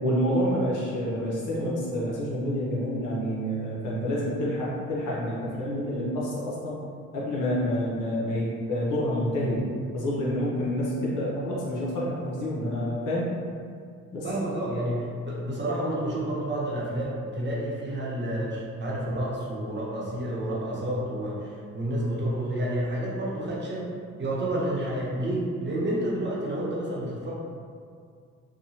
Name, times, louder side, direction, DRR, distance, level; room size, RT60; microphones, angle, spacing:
voice 1, 0.0-6.8 7.1-9.6 9.9-13.3 14.1-14.3, equal, 85° left, -5 dB, 0.8 m, -28 dB
voice 2, 14.2-23.9 24.2-27.3, right 1 dB, 40° right, -5 dB, 0.8 m, -30 dB
2.9 x 2.2 x 2.7 m, 2.2 s
cardioid pair, 90°, 30 cm